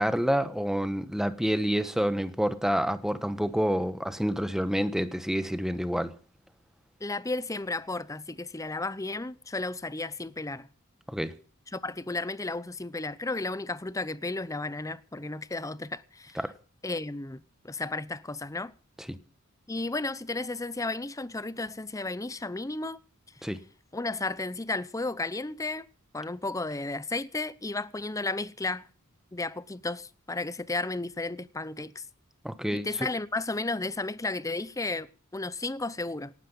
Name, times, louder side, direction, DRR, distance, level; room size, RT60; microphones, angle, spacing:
voice 1, 0.0-6.1 11.1-11.3 16.4-16.5 19.1-19.2 23.4-23.6 32.4-32.9, equal, ahead, 1.1 m, -28 dB
voice 2, 7.0-10.7 11.7-16.4 16.8-18.7 19.7-23.0 23.4-23.5 23.9-25.9 26.1-28.9 29.3-32.0 32.7-35.1 35.3-36.3, left 2 dB, 15° left, 0.7 m, -33 dB
18.0 x 12.0 x 5.4 m
head